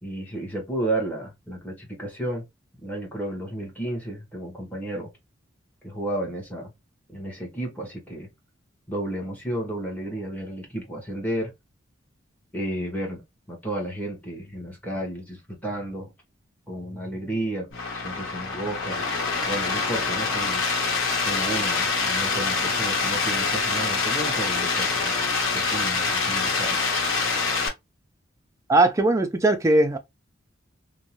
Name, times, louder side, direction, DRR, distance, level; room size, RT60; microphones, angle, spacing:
voice 1, 0.0-2.5 2.8-5.1 5.8-6.7 7.1-8.3 8.9-11.5 12.5-13.2 13.5-16.1 16.7-17.7 17.9-19.1 19.5-20.6 21.2-25.2 25.5-26.8, right 1 dB, 10° left, 0.9 m, -32 dB
sound 1, 17.7-27.7, left 4 dB, 80° left, 0.9 m, -25 dB
voice 2, 28.7-30.0, right 2 dB, 15° right, 0.3 m, -19 dB
2.6 x 2.0 x 2.9 m
head